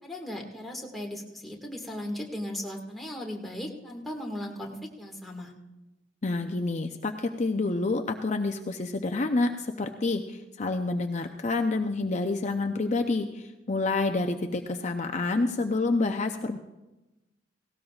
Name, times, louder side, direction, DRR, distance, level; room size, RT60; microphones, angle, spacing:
voice 1, 0.0-5.5, left 1 dB, ahead, -1 dB, 1.8 m, -37 dB
voice 2, 6.2-16.6, left 3 dB, 40° left, 5 dB, 0.6 m, -28 dB
18.0 x 17.5 x 2.4 m, 1.0 s
head